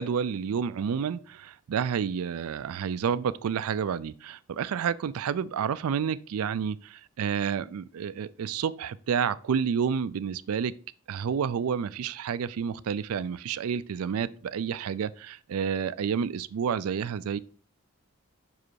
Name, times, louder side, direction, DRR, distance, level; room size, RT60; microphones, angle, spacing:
voice 1, 0.0-10.7 11.1-17.4, right 7 dB, 80° right, 0.4 m, -30 dB
5.6 x 4.9 x 4.6 m
head